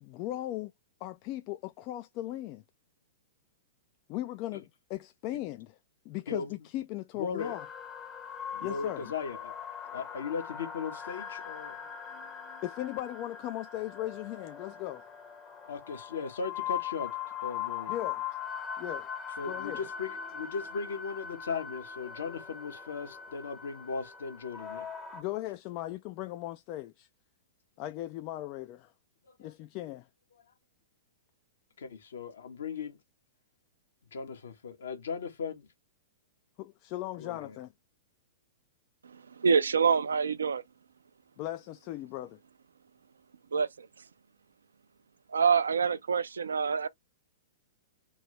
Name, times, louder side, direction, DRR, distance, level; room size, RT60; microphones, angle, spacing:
voice 1, 0.0-0.7 1.0-2.6 4.1-5.7 6.1-7.6 8.6-9.1 12.6-15.0 17.9-18.2 18.8-19.1 19.4-19.8 25.1-27.1 27.8-28.9 29.4-30.1 36.6-37.7 41.4-42.4, left 15 dB, 40° left, 0.3 m, -38 dB
voice 2, 7.1-7.6 8.5-9.5 9.9-11.8 15.7-17.2 17.4-17.9 19.4-24.9 29.3-29.5 31.8-33.0 34.1-35.7 37.2-37.6, left 5 dB, 65° left, 1.2 m, -37 dB
sound 1, 7.4-25.2, left 8 dB, 15° left, 0.8 m, -40 dB
voice 3, 39.0-40.6 43.5-43.9 45.3-46.9, right 6 dB, 70° right, 0.4 m, -26 dB
3.1 x 2.6 x 3.2 m
figure-of-eight pair, 105°, 0 cm